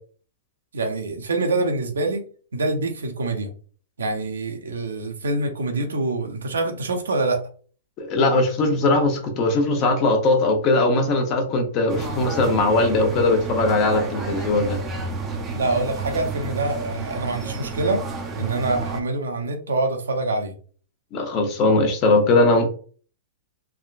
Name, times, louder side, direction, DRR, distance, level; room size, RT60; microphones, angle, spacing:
voice 1, 0.7-2.2 2.5-3.5 4.0-7.4 15.5-18.1 18.4-20.5, right 2 dB, 90° right, 0.7 m, -25 dB
voice 2, 8.0-14.8 21.1-22.7, left 2 dB, 35° left, 0.8 m, -20 dB
sound 1, 11.9-19.0, right 3 dB, 20° right, 0.6 m, -31 dB
3.5 x 2.2 x 2.5 m
hypercardioid pair, 125°, 0 cm